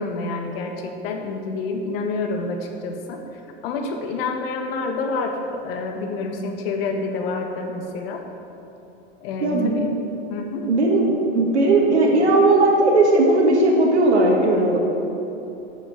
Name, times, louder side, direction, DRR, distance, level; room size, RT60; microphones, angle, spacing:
voice 1, 0.0-3.2 3.6-8.2 9.2-9.9 10.3-10.7, left 3 dB, 60° left, 3 dB, 1.3 m, -28 dB
voice 2, 9.4-9.8 10.7-14.8, right 2 dB, 90° right, -1 dB, 1.6 m, -17 dB
8.3 x 6.9 x 6.4 m, 2.9 s
hypercardioid pair, 105°, 33 cm